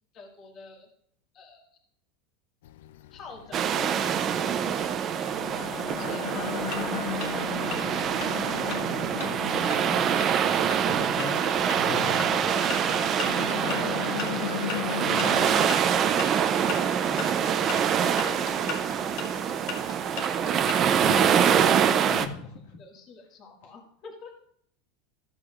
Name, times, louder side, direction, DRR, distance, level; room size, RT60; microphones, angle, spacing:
voice 1, 0.1-0.9 1.3-1.7 3.1-5.1 5.8-9.3 9.6-9.7 10.3-10.5 11.4-14.8 15.2-16.1 16.6-19.8 22.8-24.3, left 4 dB, 30° left, 0 dB, 1.9 m, -45 dB
sound 1, 2.6-20.8, left 13 dB, 90° left, 0.3 m, -39 dB
sound 2, 3.5-22.3, right 8 dB, 25° right, 0.5 m, -25 dB
sound 3, 6.5-21.5, left 6 dB, 45° left, 1.3 m, -40 dB
voice 2, 10.3-11.4 11.7-12.4 21.0-21.4 22.0-22.8, left 4 dB, 65° left, -1 dB, 1.6 m, -37 dB
14.0 x 7.7 x 2.4 m, 0.67 s
supercardioid pair, 170°, 0 cm